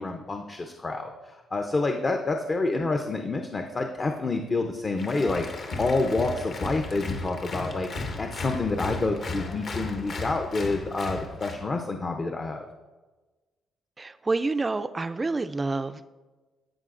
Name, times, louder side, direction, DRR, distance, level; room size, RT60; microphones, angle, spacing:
voice 1, 0.0-12.6, left 3 dB, 35° left, 4 dB, 0.6 m, -28 dB
Applause, 5.0-11.6, left 2 dB, 55° left, 1.0 m, -35 dB
voice 2, 14.0-16.1, right 3 dB, 25° right, 12 dB, 0.3 m, -28 dB
14.0 x 4.7 x 2.5 m, 1.2 s
cardioid pair, 90°, 0 cm